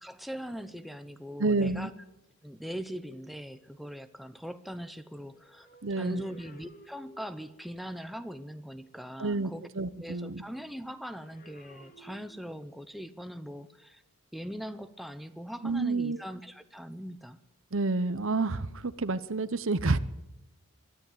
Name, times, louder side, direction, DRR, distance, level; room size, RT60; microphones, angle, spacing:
voice 1, 0.0-1.9 2.4-5.7 6.0-9.7 10.0-14.0 14.3-17.4, equal, ahead, 9 dB, 0.7 m, -41 dB
voice 2, 1.4-1.9 5.8-6.2 9.2-10.4 15.6-16.2 17.7-20.0, right 3 dB, 60° right, 15 dB, 0.8 m, -29 dB
sound 1, 5.0-7.8 10.9-12.9 13.7-13.9, right 2 dB, 40° left, 2.3 m, -55 dB
22.0 x 13.5 x 9.4 m, 0.95 s
head